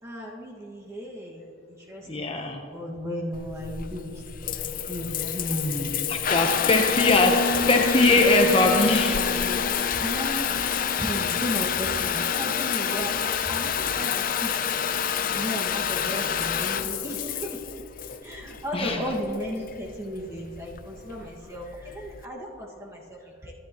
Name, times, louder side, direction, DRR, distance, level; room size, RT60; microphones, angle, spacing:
voice 1, 0.0-6.0 7.6-8.3 8.9-10.6 11.0-14.1 14.4-14.7 15.3-17.6 18.2-23.5, equal, 15° right, -2 dB, 1.8 m, -35 dB
voice 2, 2.1-2.6 6.1-7.4 7.7-9.6 9.9-10.0 18.7-19.1, left 2 dB, 30° left, 2 dB, 0.9 m, -22 dB
Water tap faucet / Bathtub (filling or washing) / Trickle dribble, 3.3-22.2, left 7 dB, 45° left, 0.5 m, -28 dB
26.5 x 11.0 x 3.0 m, 2.5 s
head